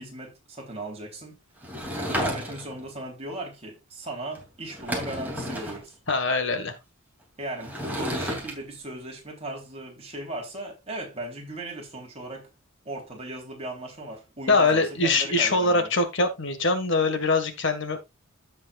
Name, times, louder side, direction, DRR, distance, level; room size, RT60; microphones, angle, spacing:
voice 1, 0.0-1.4 2.0-6.0 7.4-12.5 12.9-15.9, right 1 dB, 30° right, 3.6 m, -37 dB
Sliding door / Wood, 1.6-2.8 4.3-4.4 4.7-5.8 7.6-8.5, equal, 10° right, 2.8 m, -31 dB
voice 2, 6.1-6.8 14.5-18.0, left 3 dB, 60° left, 1.8 m, -23 dB
15.5 x 5.4 x 2.5 m
head